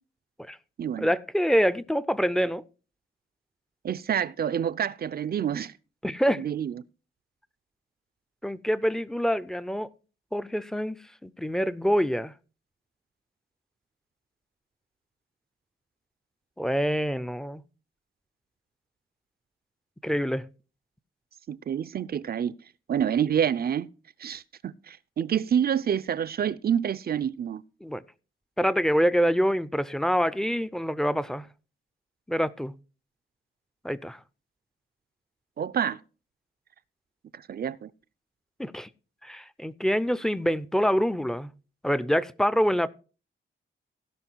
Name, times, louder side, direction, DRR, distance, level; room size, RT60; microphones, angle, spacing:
voice 1, 1.0-2.6 6.0-6.4 8.4-9.9 10.3-12.3 16.6-17.6 20.0-20.4 27.8-28.0 28.6-31.5 32.3-32.7 33.8-34.2 38.6-38.9 39.2-41.5 41.8-42.9, equal, 5° left, 0.5 m, -26 dB
voice 2, 3.8-5.7 6.3-6.7 21.5-22.5 22.9-23.9 24.2-27.6 35.6-36.0 37.3-37.9, right 8 dB, 50° right, 0.5 m, -27 dB
16.5 x 5.6 x 4.5 m
cardioid pair, 100°, 21 cm